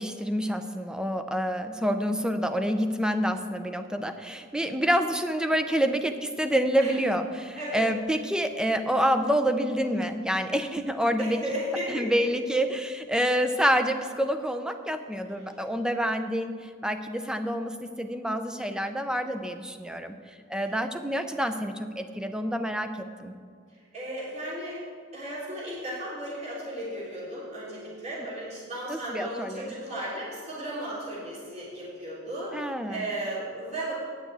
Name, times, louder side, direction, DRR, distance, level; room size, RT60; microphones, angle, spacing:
voice 1, 0.0-11.4 11.9-20.1 20.5-23.3 28.9-29.7 32.5-33.0, equal, 5° right, 8 dB, 0.5 m, -27 dB
voice 2, 7.6-7.9 11.2-12.2 20.5-20.6 23.9-24.8 25.1-33.9, right 1 dB, 35° right, -7 dB, 3.1 m, -35 dB
9.3 x 6.3 x 8.2 m, 2.1 s
head